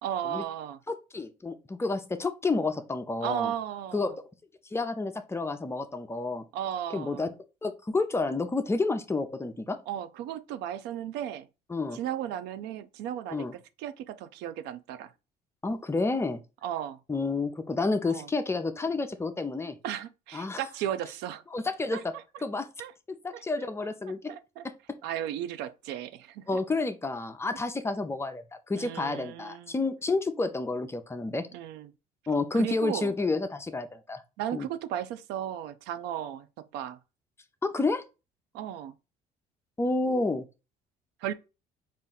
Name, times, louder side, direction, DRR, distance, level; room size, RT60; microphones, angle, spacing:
voice 1, 0.0-0.8 3.2-4.1 6.5-7.3 9.9-11.5 11.9-15.1 16.6-17.0 18.1-18.3 19.8-21.4 21.9-22.0 22.8-22.9 23.3-23.4 24.3-24.7 25.0-26.6 28.8-29.7 31.5-31.9 32.5-33.1 34.4-37.0 38.5-38.9 41.2-41.3, right 10 dB, 90° right, 0.4 m, -35 dB
voice 2, 0.9-3.5 3.9-4.1 4.7-6.4 6.9-7.3 7.6-9.8 11.7-12.0 13.3-13.5 15.6-16.4 17.1-19.8 20.3-20.6 21.5-22.0 22.4-22.7 23.2-24.3 24.6-24.7 26.5-31.5 32.3-34.2 34.5-34.7 37.6-38.0 39.8-40.5, left 3 dB, 15° left, 0.5 m, -30 dB
4.1 x 2.5 x 3.8 m
cardioid pair, 110°, 17 cm